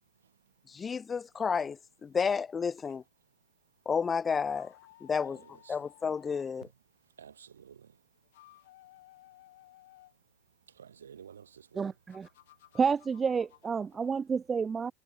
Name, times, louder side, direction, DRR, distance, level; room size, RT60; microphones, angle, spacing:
voice 1, 0.7-3.0 3.9-4.7 5.0-5.4 5.7-6.7, left 6 dB, 25° left, 0.5 m, -31 dB
sound 1, 4.4-6.5 8.2-10.1 12.1-14.2, left 16 dB, 75° left, 2.6 m, -58 dB
voice 2, 5.2-5.8 7.2-7.9 10.8-11.8, right 8 dB, 90° right, 0.8 m, -52 dB
voice 3, 11.7-12.3 12.7-14.9, right 6 dB, 25° right, 0.6 m, -30 dB
hypercardioid pair, 90°, 0 cm